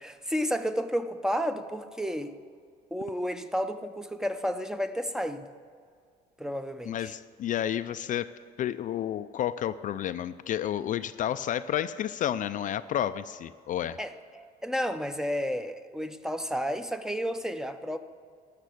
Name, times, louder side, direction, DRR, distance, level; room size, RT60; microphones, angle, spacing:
voice 1, 0.0-2.3 2.9-5.5 6.4-7.1 14.0-18.0, equal, 5° right, 10 dB, 0.6 m, -31 dB
voice 2, 6.9-8.3 8.6-14.0, left 10 dB, 50° left, 12 dB, 0.4 m, -31 dB
12.5 x 6.8 x 8.3 m, 2.1 s
cardioid pair, 110°, 17 cm